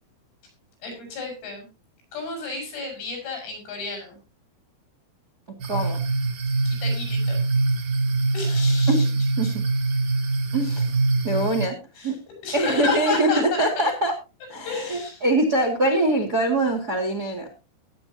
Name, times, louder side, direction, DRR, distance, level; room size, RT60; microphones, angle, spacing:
voice 1, 0.8-1.7 2.1-4.2 6.7-7.4 8.3-9.1 9.4-9.5 12.0-12.1 12.4-13.9 14.7-15.2, left 4 dB, 75° left, 3 dB, 8.0 m, -31 dB
sound 1, 5.6-11.7, right 3 dB, 60° right, 2.3 m, -23 dB
voice 2, 5.7-6.0 8.9-9.0 9.4-9.6 10.5-10.9 11.2-11.8 12.0-12.2 12.5-14.1 14.5-17.5, right 1 dB, 40° right, 5 dB, 1.4 m, -23 dB
20.0 x 9.1 x 2.8 m, 0.29 s
omnidirectional pair, 5.5 m